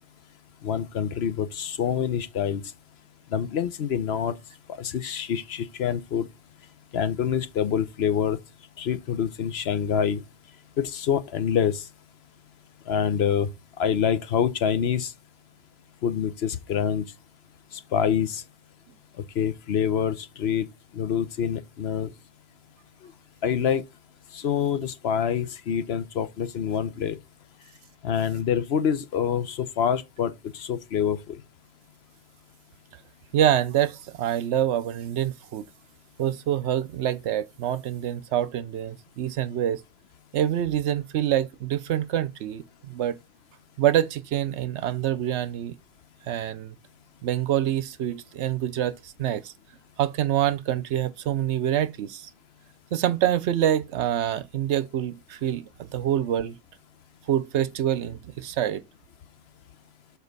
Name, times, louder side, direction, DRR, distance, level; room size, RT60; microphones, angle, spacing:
voice 1, 0.6-2.6 3.3-4.3 4.8-6.3 6.9-8.4 8.8-10.2 10.8-11.8 12.9-13.5 13.8-15.1 16.0-17.1 17.9-18.4 19.4-20.7 20.9-22.1 23.4-23.8 24.3-27.2 28.0-31.3, left 8 dB, 60° left, 0.9 m, -26 dB
voice 2, 33.3-35.6 36.2-39.8 40.3-43.2 43.8-45.8 46.3-46.7 47.2-49.5 50.0-52.3 52.9-56.6 57.3-58.8, right 11 dB, 70° right, 0.8 m, -26 dB
7.0 x 4.4 x 4.0 m
omnidirectional pair, 1.3 m